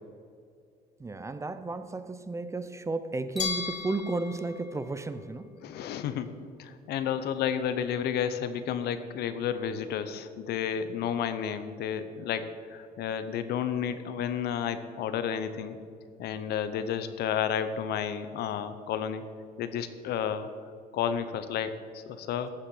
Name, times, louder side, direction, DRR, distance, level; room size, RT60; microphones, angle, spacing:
voice 1, 1.0-5.6, right 3 dB, 15° right, 11 dB, 0.5 m, -33 dB
Glass, 3.4-6.3, left 6 dB, 45° left, 1.1 m, -38 dB
sound 1, 3.4-5.6, left 4 dB, ahead, 1.4 m, -47 dB
voice 2, 5.6-6.3 6.6-15.8 16.2-19.2 19.6-20.5 20.9-22.5, left 8 dB, 75° left, 11 dB, 0.8 m, -31 dB
13.0 x 7.1 x 5.5 m, 2.3 s
cardioid pair, 110°, 17 cm